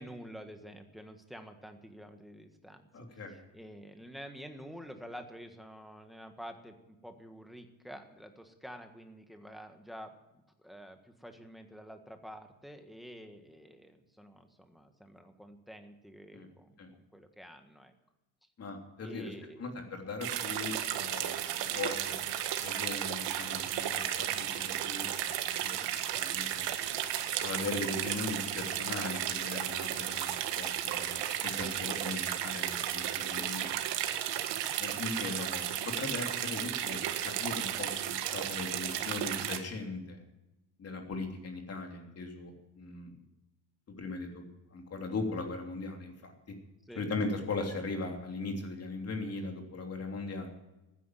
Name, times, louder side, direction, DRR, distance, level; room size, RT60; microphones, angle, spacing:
voice 1, 0.0-10.1 10.6-17.9 19.0-19.7 31.8-32.0 33.3-33.7 46.9-47.1, equal, ahead, 6 dB, 1.6 m, -49 dB
voice 2, 2.9-3.4 16.3-16.5 16.8-16.9 18.6-19.3 19.6-22.2 22.6-26.7 27.4-31.2 31.4-33.6 34.8-40.2 40.8-43.1 44.0-44.4 44.7-46.3 46.9-50.5, left 3 dB, 30° left, 2 dB, 3.3 m, -39 dB
sound 1, 20.2-39.6, right 11 dB, 65° right, 1.7 m, -34 dB
14.5 x 10.0 x 7.6 m, 0.98 s
cardioid pair, 130°, 45 cm